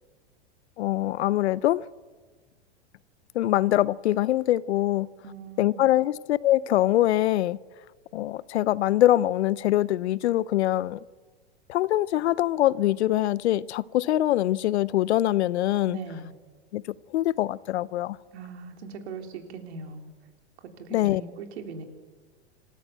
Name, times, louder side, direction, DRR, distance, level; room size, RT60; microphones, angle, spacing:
voice 1, 0.8-1.8 3.3-5.1 5.6-7.6 8.1-11.0 11.7-16.0 16.7-16.8 17.1-18.2 20.9-21.2, left 14 dB, 70° left, 0.7 m, -23 dB
voice 2, 5.2-5.8 15.9-16.3 18.3-20.1 20.8-21.8, right 4 dB, 70° right, 3.5 m, -40 dB
26.5 x 14.5 x 8.1 m
hypercardioid pair, 120°, 34 cm